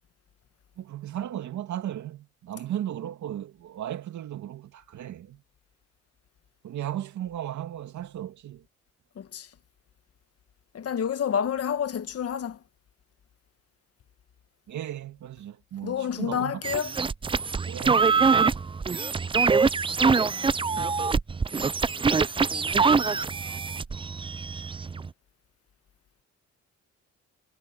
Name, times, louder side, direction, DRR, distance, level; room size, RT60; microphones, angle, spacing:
voice 1, 0.8-5.4 6.6-8.6 14.7-16.6 17.6-18.2, right 11 dB, 70° right, 2.5 m, -35 dB
voice 2, 10.7-12.6 15.8-16.9, left 8 dB, 50° left, 1.4 m, -29 dB
sound 1, 16.6-25.1, right 5 dB, 15° right, 0.4 m, -24 dB
cardioid pair, 90°, 30 cm